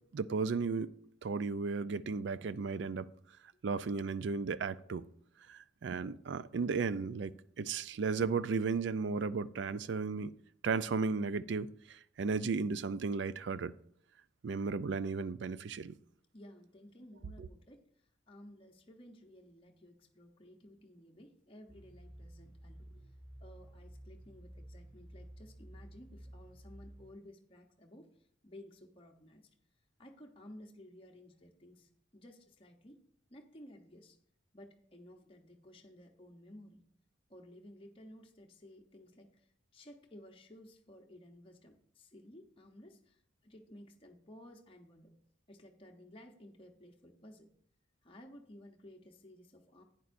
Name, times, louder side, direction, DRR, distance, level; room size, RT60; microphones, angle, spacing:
voice 1, 0.1-0.9 1.2-3.1 3.6-5.1 5.5-10.3 10.6-13.7 14.4-16.0, right 4 dB, 60° right, 0.4 m, -35 dB
voice 2, 16.3-23.1 23.4-29.5 30.0-33.0 33.3-34.2 34.5-36.8 37.3-45.1 45.5-47.5 48.0-49.8, left 1 dB, 25° left, 0.8 m, -56 dB
sound 1, 21.7-27.1, right 1 dB, 5° right, 4.0 m, -53 dB
11.0 x 9.1 x 2.6 m
head